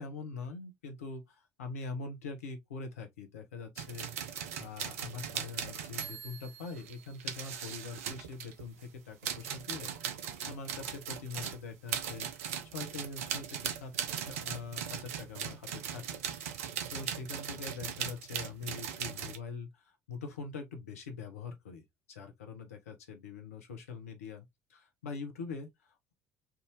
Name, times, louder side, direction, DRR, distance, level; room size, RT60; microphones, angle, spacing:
voice 1, 0.0-9.9 10.2-13.9 14.2-16.6 16.9-24.4 24.7-26.1, left 4 dB, 80° left, 0.8 m, -44 dB
sound 1, 3.8-8.9 9.2-19.4, right 8 dB, 75° right, 0.6 m, -39 dB
3.5 x 2.6 x 2.9 m
figure-of-eight pair, 55°, 8 cm